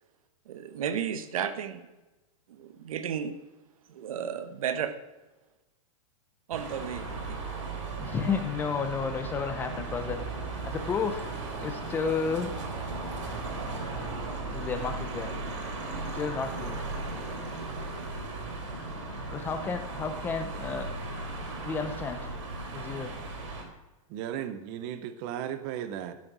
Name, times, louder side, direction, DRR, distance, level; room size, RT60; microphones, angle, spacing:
voice 1, 0.4-1.8 2.5-3.4 3.9-4.9 6.5-7.4, right 8 dB, 80° right, 11 dB, 1.1 m, -33 dB
sound 1, 6.5-23.6, right 3 dB, 60° right, 3.2 m, -36 dB
voice 2, 8.0-11.3 11.6-12.6 14.5-15.5 16.1-16.9 19.3-20.9 21.6-22.3 22.7-23.2, left 5 dB, 10° left, 7 dB, 0.5 m, -32 dB
voice 3, 24.1-26.1, right 10 dB, 30° right, 11 dB, 0.6 m, -35 dB
12.5 x 6.5 x 6.0 m, 1.1 s
supercardioid pair, 170°, 18 cm